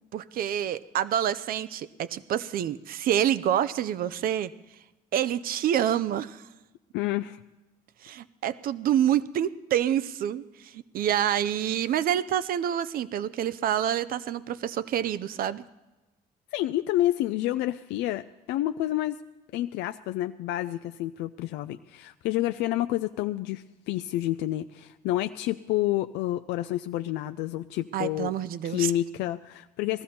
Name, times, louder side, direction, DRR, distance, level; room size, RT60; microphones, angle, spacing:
voice 1, 0.1-4.5 5.1-6.4 8.0-15.6 27.9-28.9, right 10 dB, 60° right, 16 dB, 0.6 m, -27 dB
voice 2, 6.9-7.4 16.5-19.2 19.5-28.3 28.6-30.0, left 14 dB, 85° left, 8 dB, 0.4 m, -29 dB
18.5 x 13.5 x 4.3 m, 1.1 s
cardioid pair, 110°, 17 cm